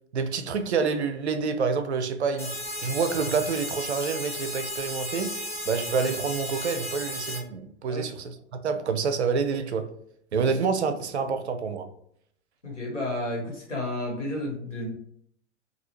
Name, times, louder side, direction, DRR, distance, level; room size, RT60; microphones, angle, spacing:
voice 1, 0.1-5.3 5.7-8.4 8.6-9.9 10.3-11.9, right 5 dB, 65° right, 0.6 m, -27 dB
sound 1, 2.4-7.4, equal, 5° left, 0.6 m, -34 dB
voice 2, 12.6-15.0, left 1 dB, 85° left, 1.3 m, -31 dB
3.3 x 2.3 x 2.9 m
figure-of-eight pair, 105°, 35 cm